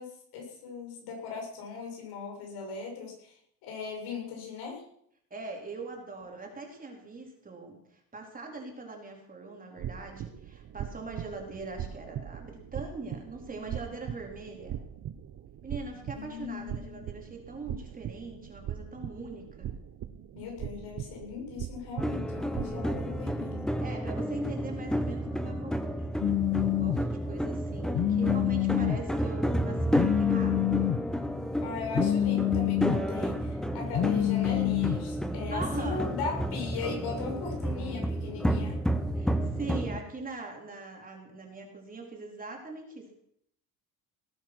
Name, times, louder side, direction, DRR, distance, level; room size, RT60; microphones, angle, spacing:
voice 1, 0.0-3.3 3.6-4.8 16.1-17.1 20.3-23.7 31.6-38.8, left 5 dB, 80° left, 1 dB, 7.1 m, -38 dB
voice 2, 5.3-7.8 8.1-14.8 15.6-19.7 23.8-26.3 26.6-30.7 35.5-36.0 39.2-43.2, right 3 dB, 20° right, 1 dB, 4.1 m, -41 dB
sound 1, 9.8-23.4, right 10 dB, 45° right, 1.0 m, -40 dB
sound 2, 22.0-40.0, equal, ahead, 1.1 m, -31 dB
Telephone, 26.2-27.0 27.9-29.0 29.9-31.0 31.9-33.0 33.9-35.0, left 13 dB, 35° left, 0.5 m, -26 dB
19.0 x 10.0 x 6.2 m, 0.70 s
cardioid pair, 130°, 38 cm